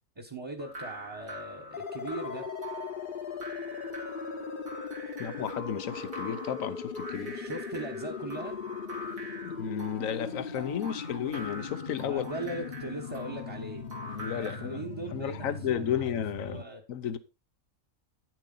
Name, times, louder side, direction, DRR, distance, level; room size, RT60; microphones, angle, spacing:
voice 1, 0.2-2.5 7.3-8.6 12.0-13.8 14.3-16.8, right 2 dB, 20° right, 1.2 m, -39 dB
sound 1, 0.6-14.8, equal, 75° right, 2.8 m, -44 dB
sound 2, 1.7-16.6, left 5 dB, 40° left, 1.1 m, -39 dB
voice 2, 5.2-7.3 9.4-12.3 14.1-14.8 15.1-16.6 16.9-17.2, left 9 dB, 75° left, 1.3 m, -33 dB
9.6 x 7.6 x 3.9 m
omnidirectional pair, 1.4 m